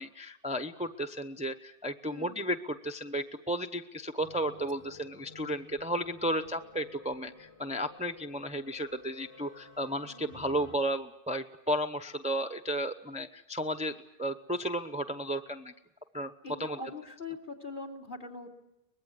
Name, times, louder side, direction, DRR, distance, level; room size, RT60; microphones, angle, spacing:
voice 1, 0.0-13.9 14.2-15.7 16.1-16.3 16.6-16.8, equal, 5° right, 6 dB, 0.7 m, -33 dB
voice 2, 2.1-2.4 16.4-18.5, left 3 dB, 55° left, 0 dB, 3.0 m, -42 dB
sound 1, 4.2-10.8, left 3 dB, 35° left, 1.8 m, -53 dB
24.0 x 21.0 x 8.3 m, 0.91 s
omnidirectional pair, 1.1 m